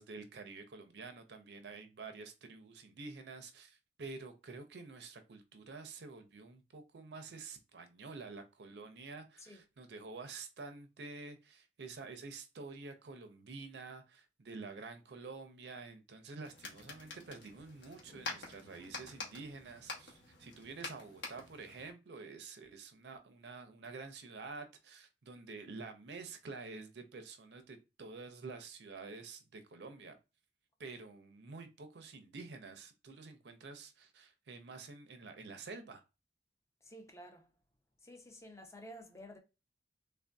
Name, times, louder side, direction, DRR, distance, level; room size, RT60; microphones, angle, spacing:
voice 1, 0.0-30.2 30.8-36.0, right 4 dB, 65° right, 0.5 m, -49 dB
sound 1, 16.4-21.9, left 3 dB, 80° left, 1.0 m, -47 dB
voice 2, 36.8-37.5 38.0-39.4, equal, 15° left, 0.5 m, -52 dB
3.4 x 2.5 x 2.2 m
head